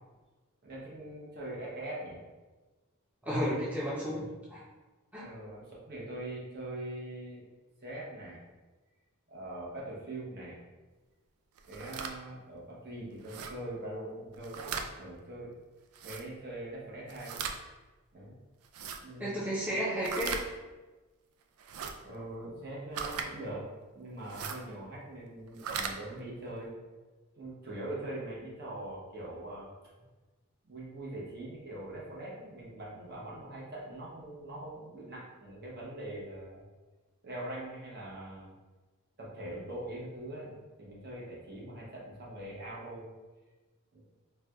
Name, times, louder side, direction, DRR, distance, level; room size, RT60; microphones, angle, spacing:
voice 1, 0.6-2.2 5.2-7.4 7.8-8.4 9.3-10.6 11.7-14.6 14.9-15.5 16.0-17.5 18.1-18.3 19.0-19.6 19.9-20.1 22.0-23.6 23.9-26.7 27.4-29.7 30.6-36.6 37.2-38.5 39.2-43.1 43.9-44.0, right 1 dB, 45° right, -5 dB, 0.8 m, -42 dB
voice 2, 3.2-4.6 5.1-5.3 19.2-20.4, equal, 5° right, -8 dB, 0.6 m, -32 dB
sound 1, 11.6-12.1 13.2-13.5 14.3-14.9 15.9-16.2 17.1-17.6 18.6-19.0 20.0-20.4 21.6-21.9 22.9-23.3 24.2-24.6 25.5-25.9, right 6 dB, 90° right, 0.3 m, -37 dB
4.4 x 2.2 x 2.3 m, 1.2 s
head